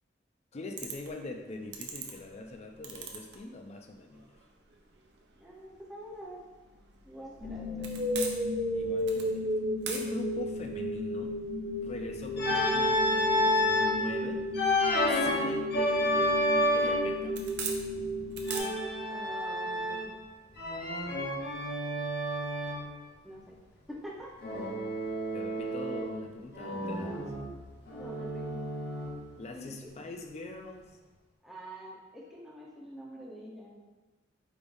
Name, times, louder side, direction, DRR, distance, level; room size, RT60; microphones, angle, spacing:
voice 1, 0.5-4.4 8.7-11.4 11.8-14.5 15.1-17.4 25.3-27.2 29.4-30.9, left 2 dB, 35° left, 3 dB, 0.4 m, -42 dB
sound 1, 0.8-18.6, right 6 dB, 65° right, 0.5 m, -46 dB
voice 2, 5.4-6.4 7.0-7.9 19.1-20.2 23.2-23.6 23.9-24.3 26.0-26.1 27.9-28.6 29.5-29.8 31.4-33.8, equal, ahead, -5 dB, 0.8 m, -46 dB
sound 2, 7.4-19.4, left 1 dB, 25° right, 1.2 m, -34 dB
Organ, 12.4-14.0 14.5-17.2 18.4-20.2 20.6-22.9 24.4-26.2 26.5-29.3, left 1 dB, 60° left, 0.9 m, -30 dB
4.7 x 3.5 x 2.6 m, 1.2 s
head